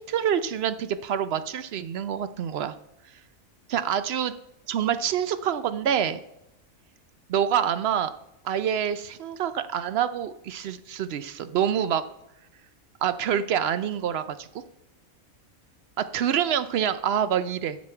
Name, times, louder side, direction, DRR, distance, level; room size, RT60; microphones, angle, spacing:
voice 1, 0.0-2.7 3.7-4.3 4.7-6.2 7.3-8.1 8.4-12.0 13.0-14.5 16.0-17.8, right 9 dB, 65° right, 13 dB, 0.6 m, -26 dB
9.5 x 6.3 x 4.4 m, 0.84 s
omnidirectional pair, 1.5 m